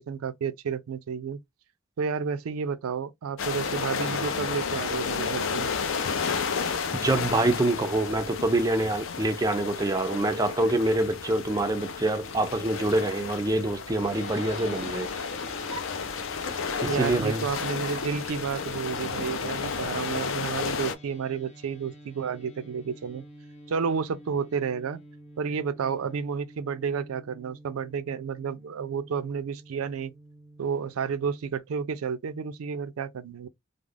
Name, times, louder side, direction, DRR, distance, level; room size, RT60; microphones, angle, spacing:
voice 1, 0.0-1.4 2.0-5.7 16.9-23.2 23.7-25.0 25.4-30.1 30.6-33.5, right 6 dB, 90° right, 0.4 m, -31 dB
sound 1, 3.4-20.9, left 5 dB, 65° left, 0.5 m, -32 dB
voice 2, 7.0-15.1 16.8-17.4, right 2 dB, 15° right, 0.3 m, -26 dB
Drawer open or close, 12.1-14.6 14.9-17.2 17.6-18.3, left 2 dB, 85° left, 1.1 m, -46 dB
sound 2, 14.1-31.6, equal, 30° left, 0.8 m, -48 dB
2.4 x 2.0 x 3.2 m
head